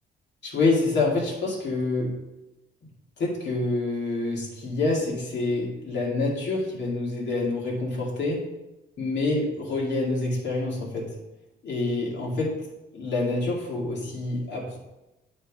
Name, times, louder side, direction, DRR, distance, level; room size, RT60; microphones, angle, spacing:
voice 1, 0.4-2.1 3.2-8.4 9.0-11.1 11.6-12.5 12.9-14.8, left 2 dB, 60° left, -4 dB, 2.4 m, -27 dB
9.3 x 3.5 x 3.6 m, 0.97 s
cardioid pair, 90°, 20 cm